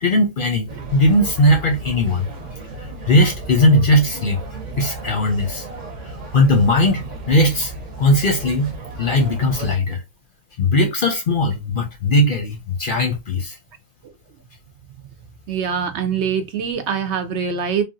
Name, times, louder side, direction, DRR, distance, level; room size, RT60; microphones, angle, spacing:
voice 1, 0.0-2.3 3.1-4.4 4.8-5.6 6.3-7.7 8.0-8.7 9.0-10.0 10.6-13.6, left 1 dB, 50° left, 0.7 m, -18 dB
sound 1, 0.7-9.8, right 2 dB, 40° right, 0.9 m, -34 dB
voice 2, 15.5-17.8, right 7 dB, 65° right, 0.8 m, -23 dB
3.3 x 2.4 x 2.6 m
omnidirectional pair, 1.3 m